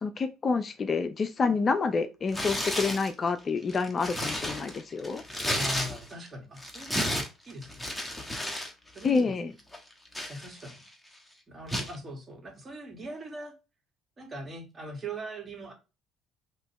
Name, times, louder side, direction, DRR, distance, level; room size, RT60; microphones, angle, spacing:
voice 1, 0.0-5.2 9.0-9.5, left 4 dB, 40° left, 0.5 m, -28 dB
Tearing, 2.3-3.1 3.6-6.3 6.6-8.7 9.0-9.2 9.7-10.9 11.7-12.0, left 1 dB, 5° left, 1.2 m, -33 dB
voice 2, 5.5-7.2 7.5-7.8 8.9-9.3 10.3-10.8 11.5-13.5 14.2-15.7, right 1 dB, 30° right, 2.0 m, -40 dB
5.3 x 3.0 x 3.0 m
hypercardioid pair, 70°, 0 cm